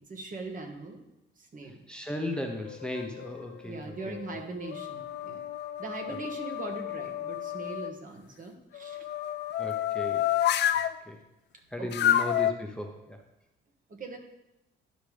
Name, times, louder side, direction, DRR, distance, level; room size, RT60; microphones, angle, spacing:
voice 1, 0.1-1.0 1.4-1.8 3.6-5.4 5.8-9.1 11.8-12.2 13.9-14.2, right 3 dB, 45° right, 3 dB, 1.4 m, -40 dB
voice 2, 1.9-4.2 9.6-10.3 11.1-11.2 11.7-13.2, left 1 dB, 5° left, 3 dB, 0.8 m, -36 dB
sound 1, 2.5-3.4 4.0-7.9 8.7-11.0 11.9-12.5, left 11 dB, 60° left, 0.4 m, -30 dB
11.5 x 5.0 x 3.3 m, 0.93 s
cardioid pair, 90°, 20 cm